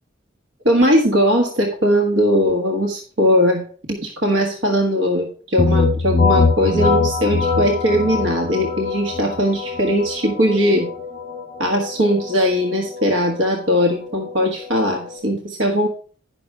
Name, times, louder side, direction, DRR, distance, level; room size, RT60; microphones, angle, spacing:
voice 1, 0.6-3.6 3.9-10.9 11.6-15.9, equal, 65° right, 1 dB, 1.4 m, -19 dB
sound 1, 5.6-15.2, left 4 dB, 40° left, 4.3 m, -23 dB
10.0 x 6.0 x 4.8 m, 0.43 s
head